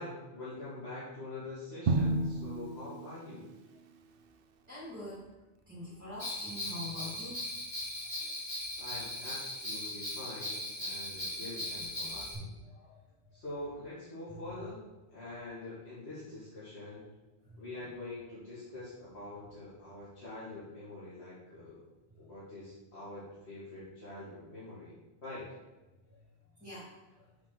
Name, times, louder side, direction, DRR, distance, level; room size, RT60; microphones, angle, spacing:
voice 1, 0.0-3.5 8.8-12.6 13.3-14.8 15.1-17.0 17.6-21.8 22.2-24.9 25.2-25.5, left 2 dB, 80° left, -10 dB, 2.6 m, -45 dB
Drum, 1.9-3.9, right 2 dB, 65° right, 0.8 m, -32 dB
voice 2, 4.7-5.2 5.7-7.5 8.2-8.3 12.0-12.4 12.7-12.9 17.5-17.6 26.6-26.9, left 1 dB, 15° right, -9 dB, 2.9 m, -44 dB
Bell, 6.2-12.3, left 1 dB, 45° left, 3.0 m, -39 dB
6.5 x 5.8 x 6.0 m, 1.1 s
omnidirectional pair, 1.1 m